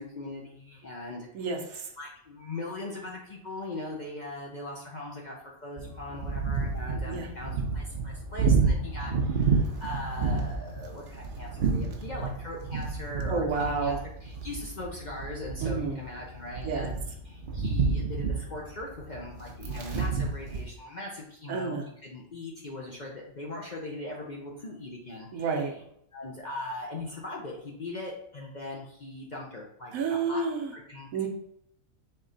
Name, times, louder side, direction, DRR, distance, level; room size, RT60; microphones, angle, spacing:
voice 1, 0.0-1.6 2.0-17.0 17.2-25.8 26.1-30.4 30.7-31.3, left 2 dB, 45° left, -2 dB, 0.6 m, -40 dB
voice 2, 1.3-1.9 7.1-7.3 13.3-14.0 15.6-16.0 16.6-16.8 21.5-21.8 25.3-25.7 29.9-30.7 31.1-31.3, right 4 dB, 75° right, 3 dB, 1.2 m, -30 dB
sound 1, 5.8-20.6, right 4 dB, 50° right, 0.7 m, -30 dB
4.3 x 3.1 x 3.9 m, 0.72 s
omnidirectional pair, 1.5 m